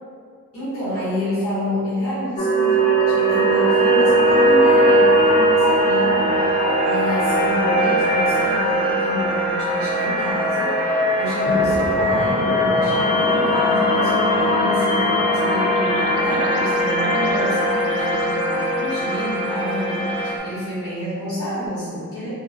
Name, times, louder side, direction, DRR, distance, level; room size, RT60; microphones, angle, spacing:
voice 1, 0.5-22.3, equal, 70° left, -12 dB, 1.2 m, -28 dB
sound 1, 2.4-20.4, equal, 25° left, 0.3 m, -19 dB
sound 2, 11.4-19.7, right 2 dB, 85° right, 0.4 m, -31 dB
3.2 x 2.3 x 2.4 m, 2.1 s
head